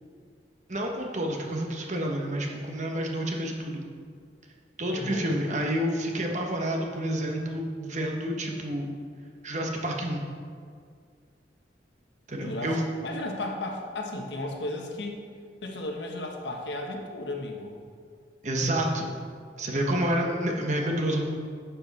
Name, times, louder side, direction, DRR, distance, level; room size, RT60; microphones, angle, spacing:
voice 1, 0.7-3.8 4.8-8.9 9.4-10.2 12.3-12.8 18.4-19.1 19.6-21.3, right 1 dB, 40° right, 1 dB, 1.2 m, -29 dB
voice 2, 4.9-5.3 12.4-12.7 13.0-15.2 15.6-17.8, left 2 dB, 75° left, 1 dB, 1.3 m, -34 dB
11.0 x 7.3 x 4.2 m, 2.1 s
head